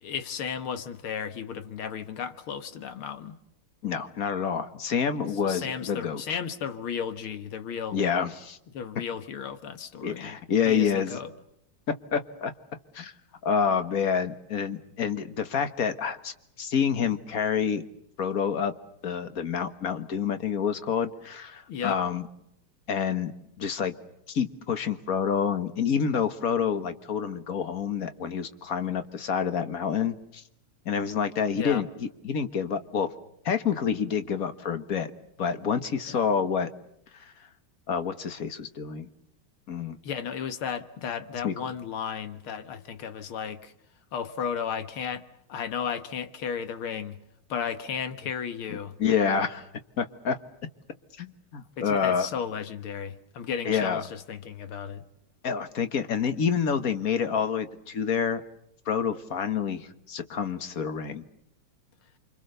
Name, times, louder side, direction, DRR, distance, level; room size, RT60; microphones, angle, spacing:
voice 1, 0.0-3.4 5.4-8.0 8.7-10.3 10.7-11.3 21.7-22.0 31.6-31.8 36.1-36.3 40.0-43.7 44.1-45.2 45.5-47.2 47.5-49.0 51.8-55.0, left 7 dB, 80° left, 2.2 m, -34 dB
voice 2, 3.8-6.4 7.9-8.6 10.0-11.2 11.9-12.5 12.9-13.1 13.4-17.8 18.2-18.7 19.0-22.2 22.9-23.3 23.6-23.9 24.3-30.4 30.9-33.1 33.5-35.1 35.4-36.7 37.1-37.3 37.9-39.1 39.7-40.0 41.4-41.6 48.7-49.7 50.0-50.4 51.2-52.3 53.7-54.0 55.4-58.4 58.9-61.3, left 7 dB, 45° left, 1.7 m, -28 dB
29.0 x 25.0 x 6.7 m
omnidirectional pair, 2.3 m